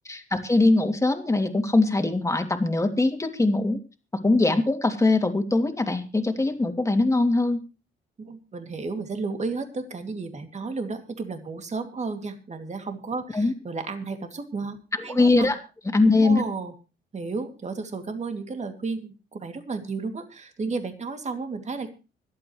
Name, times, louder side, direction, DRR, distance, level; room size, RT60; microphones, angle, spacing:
voice 1, 0.0-3.8 4.2-7.6 13.3-13.5 14.9-15.6 15.9-16.4, left 2 dB, 15° left, 5 dB, 2.8 m, -22 dB
voice 2, 8.2-14.8 15.0-15.5 16.2-16.7 17.1-21.9, right 4 dB, 35° right, 6 dB, 2.5 m, -33 dB
25.5 x 8.6 x 3.2 m, 0.31 s
cardioid pair, 90°, 20 cm